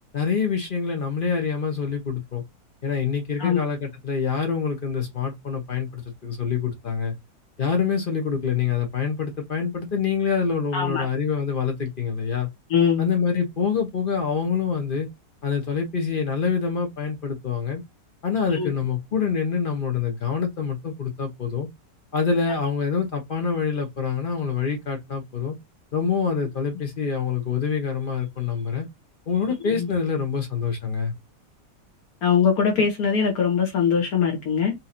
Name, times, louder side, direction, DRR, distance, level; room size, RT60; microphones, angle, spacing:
voice 1, 0.1-2.4 2.8-7.1 7.6-12.5 13.0-15.1 15.4-17.8 18.2-21.7 22.1-25.5 25.9-28.9 29.3-31.1, left 6 dB, 45° left, 0.7 m, -26 dB
voice 2, 10.7-11.0 12.7-13.1 18.5-18.7 29.8-29.9 32.2-34.7, left 7 dB, 65° left, 1.3 m, -21 dB
4.2 x 2.8 x 2.5 m
omnidirectional pair, 1.8 m